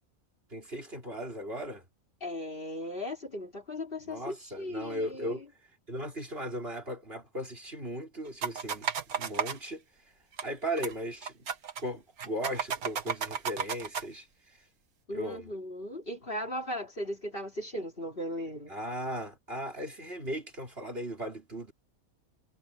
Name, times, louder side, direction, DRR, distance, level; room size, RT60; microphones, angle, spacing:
voice 1, 0.5-1.9 4.0-5.4 5.9-8.9 9.1-9.8 10.4-11.5 11.8-14.6 15.1-15.5 18.7-21.7, equal, 40° right, 5.0 m, -37 dB
voice 2, 2.2-5.4 15.1-18.7, left 1 dB, 40° left, 3.2 m, -37 dB
sound 1, 8.4-9.6 10.4-10.5 10.8-10.9 11.2-11.8 12.2-14.1, right 6 dB, 80° right, 1.8 m, -33 dB
omnidirectional pair, 1.5 m